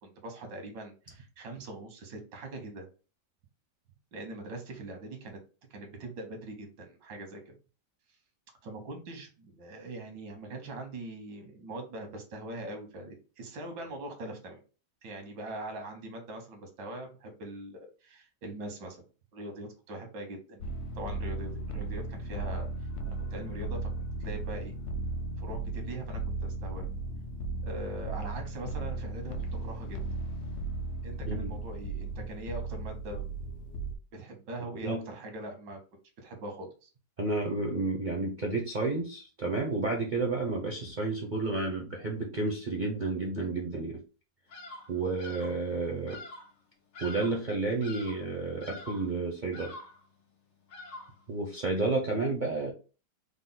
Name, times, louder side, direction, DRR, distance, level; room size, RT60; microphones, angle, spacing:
voice 1, 0.0-2.9 4.1-5.4 5.7-7.5 8.6-14.6 15.0-19.0 19.3-20.7 21.0-22.7 23.3-24.7 25.4-26.9 27.6-30.0 31.0-33.3 34.1-35.8 36.2-36.9, right 1 dB, 85° right, 4 dB, 1.7 m, -42 dB
sound 1, 20.6-33.9, right 3 dB, 70° left, 0.6 m, -36 dB
voice 2, 37.2-44.0 44.9-46.2 47.0-49.7 51.3-52.7, right 3 dB, 60° right, -1 dB, 0.5 m, -31 dB
Bird vocalization bird call bird song, 44.5-44.9 45.2-45.6 46.1-46.5 46.9-47.5 47.8-48.3 48.6-49.1 49.5-50.0 50.7-51.2, left 2 dB, 90° left, 1.8 m, -45 dB
4.9 x 2.1 x 3.9 m, 0.34 s
omnidirectional pair, 1.9 m